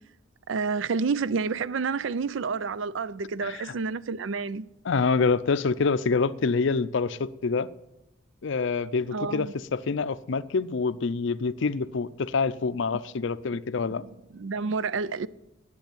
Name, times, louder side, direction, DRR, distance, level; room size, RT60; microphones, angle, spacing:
voice 1, 0.5-4.7 9.1-9.5 14.0-15.3, right 5 dB, 65° right, 0.4 m, -29 dB
voice 2, 3.4-3.7 4.8-7.7 8.4-14.0, left 4 dB, 65° left, 0.5 m, -26 dB
10.5 x 7.8 x 8.9 m
head